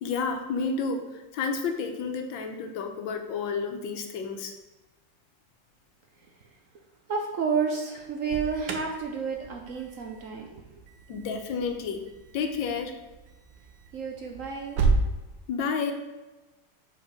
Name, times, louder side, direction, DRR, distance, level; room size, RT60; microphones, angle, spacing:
voice 1, 0.0-4.5 11.1-12.0 12.3-13.0 15.5-15.9, left 5 dB, 85° left, 5 dB, 1.5 m, -30 dB
voice 2, 7.1-10.5 13.9-14.8, right 5 dB, 60° right, 2 dB, 0.9 m, -30 dB
Alarm, 8.0-15.1, right 3 dB, 80° right, 1.5 m, -33 dB
5.1 x 5.1 x 4.9 m, 1.1 s
omnidirectional pair, 2.0 m